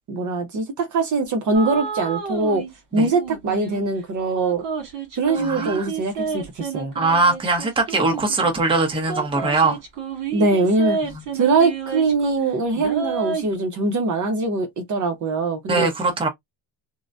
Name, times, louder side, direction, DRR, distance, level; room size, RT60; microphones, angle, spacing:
voice 1, 0.1-2.6 2.9-4.6 5.2-6.9 10.3-11.0 11.3-15.9, right 3 dB, 40° right, 0.8 m, -22 dB
sound 1, 1.5-2.7 3.0-3.8 4.3-8.5 9.1-12.4 12.7-13.5, right 6 dB, 70° right, 1.8 m, -30 dB
voice 2, 5.4-5.9 6.9-9.8 15.7-16.3, right 3 dB, 10° right, 0.8 m, -21 dB
3.8 x 2.1 x 2.4 m
cardioid pair, 150°, 45 cm